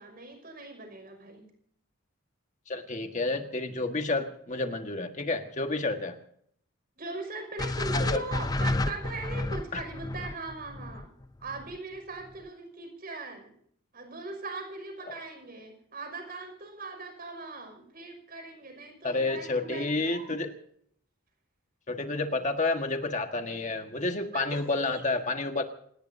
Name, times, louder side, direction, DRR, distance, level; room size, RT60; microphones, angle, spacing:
voice 1, 0.0-1.5 7.0-11.1 11.4-13.5 13.9-20.3 24.3-25.0, right 3 dB, 45° right, 5 dB, 5.8 m, -40 dB
voice 2, 2.7-6.1 7.9-8.2 9.7-9.8 19.0-20.5 21.9-25.6, left 2 dB, 35° left, 5 dB, 1.6 m, -30 dB
sound 1, 7.6-11.8, left 2 dB, 20° left, 0.6 m, -31 dB
28.5 x 18.5 x 2.7 m, 0.65 s
head